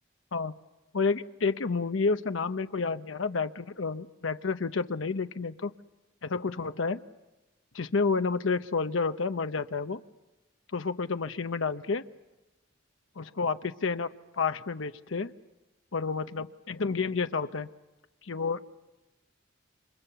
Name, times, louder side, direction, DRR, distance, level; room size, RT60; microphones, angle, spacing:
voice 1, 0.9-5.7 6.2-7.0 7.7-10.0 10.7-12.0 13.2-14.1 14.3-15.3 15.9-17.7 18.2-18.6, left 4 dB, 90° left, 10 dB, 0.8 m, -30 dB
29.0 x 26.0 x 6.9 m, 1.1 s
head